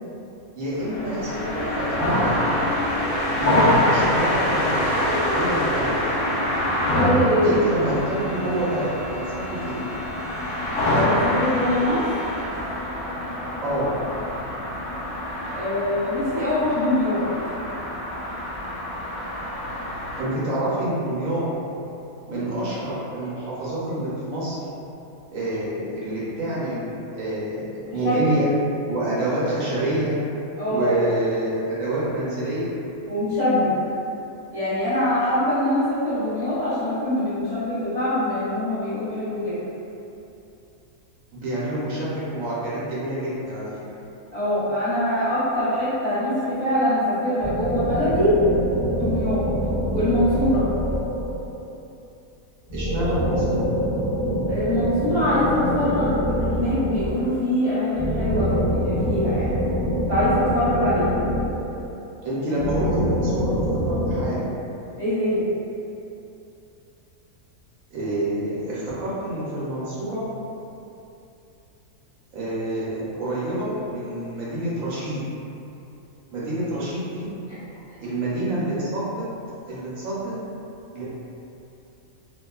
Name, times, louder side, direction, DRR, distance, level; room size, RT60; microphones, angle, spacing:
voice 1, 0.6-2.4 3.4-6.0 7.4-9.8 13.6-13.9 20.2-21.5 22.3-24.6 25.3-28.5 28.9-30.1 30.7-32.7 41.3-43.7 52.7-53.6 62.2-64.4 67.9-70.2 72.3-75.2 76.3-77.3 78.0-79.3 79.7-80.3 80.9-81.0, right 1 dB, 70° right, -9 dB, 1.0 m, -27 dB
sound 1, 0.7-20.2, left 1 dB, 70° left, 0.5 m, -25 dB
voice 2, 6.8-7.6 10.9-12.0 15.5-17.2 28.0-28.4 30.6-30.9 33.1-33.7 34.5-39.6 44.3-48.3 48.9-49.4 49.9-50.6 54.5-58.5 58.8-59.5 60.1-61.1 65.0-65.4, left 1 dB, 35° left, -16 dB, 0.8 m, -23 dB
sound 2, 47.4-51.6 52.7-57.3 57.9-62.0 62.6-64.3, equal, 35° right, 0.8 m, -25 dB
2.9 x 2.1 x 2.2 m, 2.8 s
omnidirectional pair, 1.5 m